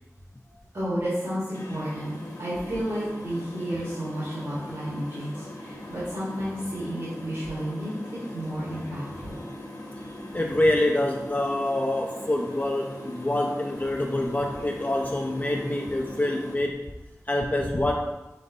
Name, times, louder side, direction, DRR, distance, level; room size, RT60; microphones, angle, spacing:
voice 1, 0.7-7.9 8.3-9.4, equal, 70° right, -10 dB, 1.6 m, -31 dB
sound 1, 1.5-16.5, left 1 dB, 80° left, 1.0 m, -41 dB
voice 2, 10.3-16.8 17.3-18.1, left 1 dB, 30° left, 0 dB, 0.4 m, -26 dB
5.1 x 3.8 x 2.7 m, 1.1 s
wide cardioid pair, 55°, 6 cm